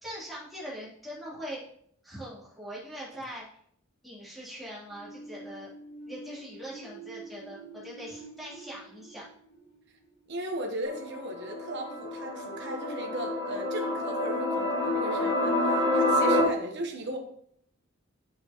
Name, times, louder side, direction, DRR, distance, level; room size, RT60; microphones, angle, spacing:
voice 1, 0.0-1.6 2.0-3.4 4.0-5.7 6.0-9.3, equal, ahead, -9 dB, 3.5 m, -42 dB
sound 1, 4.9-10.6, right 2 dB, 55° left, 3.0 m, -47 dB
voice 2, 10.3-17.2, right 1 dB, 55° right, 1 dB, 1.3 m, -36 dB
sound 2, 10.9-16.4, left 1 dB, 30° right, 2.1 m, -28 dB
8.0 x 7.0 x 3.1 m, 0.66 s
head